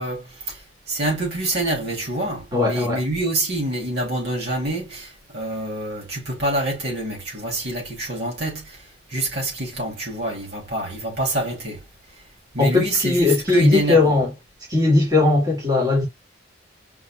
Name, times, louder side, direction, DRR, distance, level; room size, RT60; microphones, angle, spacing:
voice 1, 0.0-11.8 12.5-14.2, right 1 dB, 55° right, 2.9 m, -26 dB
voice 2, 2.5-3.0 12.6-14.3 14.7-16.1, left 3 dB, 20° right, 2.3 m, -18 dB
5.5 x 4.2 x 2.3 m
head